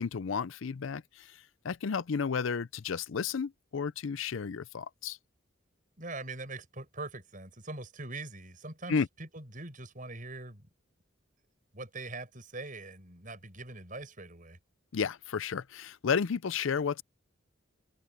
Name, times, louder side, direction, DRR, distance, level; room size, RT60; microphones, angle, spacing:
voice 1, 0.0-5.2 8.9-9.1 14.9-17.0, left 6 dB, 75° left, 0.5 m, -32 dB
voice 2, 6.0-10.7 11.7-14.6, right 2 dB, 40° right, 7.9 m, -42 dB
head